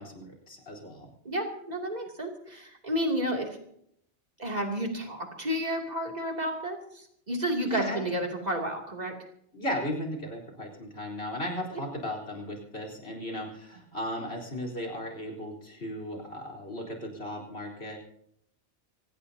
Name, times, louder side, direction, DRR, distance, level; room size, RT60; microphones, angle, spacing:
voice 1, 0.0-1.1 7.6-8.2 9.5-18.0, equal, 60° left, 1 dB, 4.2 m, -36 dB
voice 2, 1.2-3.6 4.4-9.2 11.7-11.8, equal, 35° right, 1 dB, 2.8 m, -31 dB
25.5 x 17.0 x 2.8 m, 0.73 s
omnidirectional pair, 1.2 m